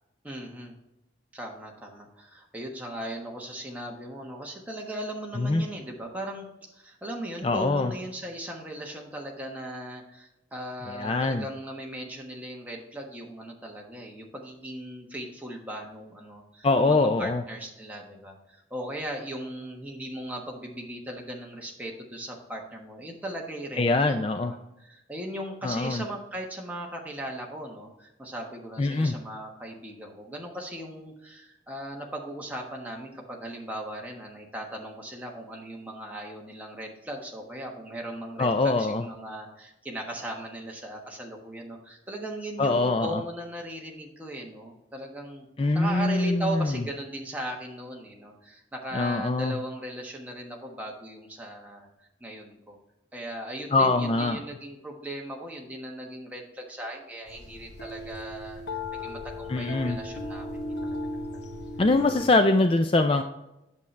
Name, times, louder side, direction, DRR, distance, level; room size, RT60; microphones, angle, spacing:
voice 1, 0.2-0.8 1.3-45.5 45.7-52.8 53.1-58.6 59.0-60.5 60.8-60.9, right 1 dB, 10° right, -1 dB, 1.2 m, -38 dB
voice 2, 7.4-7.9 10.9-11.5 16.6-17.4 23.8-24.5 25.6-26.0 28.8-29.1 38.4-39.0 42.6-43.2 45.6-46.8 48.9-49.6 53.7-54.4 59.5-60.0 61.8-63.2, left 2 dB, 30° left, 7 dB, 0.3 m, -23 dB
sound 1, 57.3-62.3, left 1 dB, 60° left, 1.0 m, -36 dB
8.5 x 7.0 x 3.2 m, 0.93 s
head